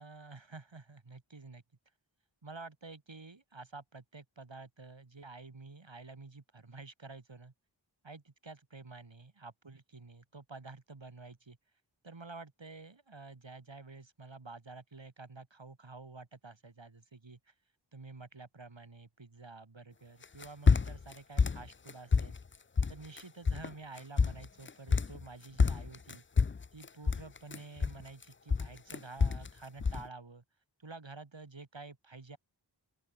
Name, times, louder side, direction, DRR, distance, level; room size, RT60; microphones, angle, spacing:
voice 1, 0.0-1.6 2.4-7.5 8.0-11.6 12.0-17.5 17.9-22.4 22.9-26.2 26.7-30.4 30.8-32.4, right 3 dB, 75° right, 4.8 m, -50 dB
sound 1, 20.2-21.1 21.4-22.4 22.8-23.2 23.5-23.7 24.0-25.2 25.6-28.2 28.5-29.5 29.8-30.1, left 5 dB, 25° left, 0.5 m, -28 dB
open air
wide cardioid pair, 50°, 45 cm